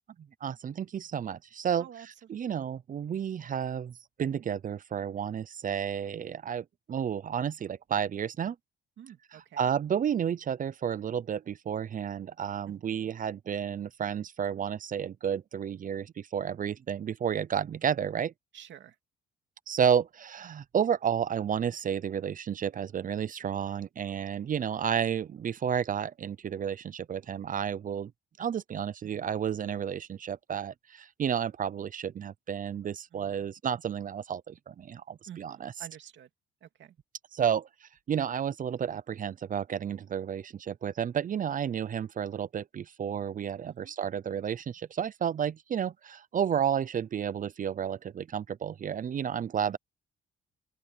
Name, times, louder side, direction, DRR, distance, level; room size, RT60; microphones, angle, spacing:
voice 1, 0.4-1.9 2.3-3.9 4.2-8.6 9.3-18.3 19.7-28.1 28.4-35.7 37.3-37.7 38.1-49.8, right 8 dB, 45° right, 0.6 m, -31 dB
voice 2, 1.8-2.6 9.0-9.7 12.7-13.2 18.5-19.0 29.0-29.3 33.1-33.5 35.3-36.3 36.6-37.0 43.7-44.0 49.7-49.8, right 10 dB, 70° right, 2.7 m, -50 dB
open air
cardioid pair, 90°, 20 cm